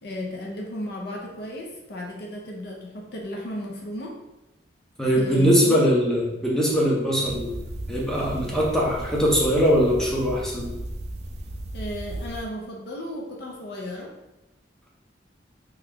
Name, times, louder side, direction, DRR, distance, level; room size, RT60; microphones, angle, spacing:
voice 1, 0.0-4.2 5.1-5.8 11.7-14.1, left 1 dB, 60° left, 0 dB, 0.5 m, -34 dB
voice 2, 5.0-7.5 7.9-10.7, equal, 5° left, -4 dB, 0.6 m, -21 dB
sound 1, 7.2-12.4, right 1 dB, 35° right, 0.3 m, -35 dB
2.9 x 2.3 x 3.5 m, 0.96 s
head